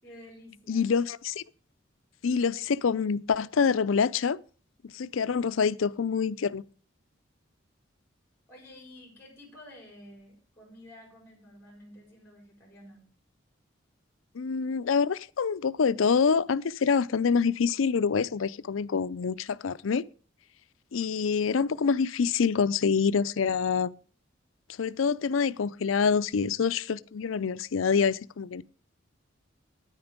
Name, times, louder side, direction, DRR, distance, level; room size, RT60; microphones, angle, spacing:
voice 1, 0.0-1.0 8.5-13.0, left 1 dB, 10° left, 4.6 m, -51 dB
voice 2, 0.7-1.4 2.2-4.4 4.8-6.6 14.3-20.0 20.9-23.9 24.8-28.6, left 6 dB, 90° left, 0.5 m, -26 dB
9.8 x 9.6 x 5.1 m
head